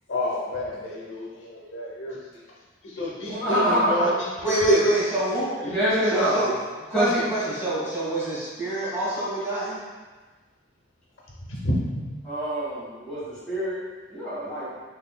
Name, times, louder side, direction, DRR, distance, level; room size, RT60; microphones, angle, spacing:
voice 1, 0.1-2.2 3.0-4.9 11.6-12.0, equal, 75° left, -4 dB, 0.9 m, -27 dB
voice 2, 3.3-4.0 5.6-6.4 6.9-7.2 12.2-13.8 14.1-14.7, equal, 5° left, -13 dB, 1.5 m, -25 dB
voice 3, 4.4-5.7 6.0-6.5 6.9-9.8, right 2 dB, 15° right, -10 dB, 1.3 m, -26 dB
3.9 x 3.1 x 2.2 m, 1.3 s
head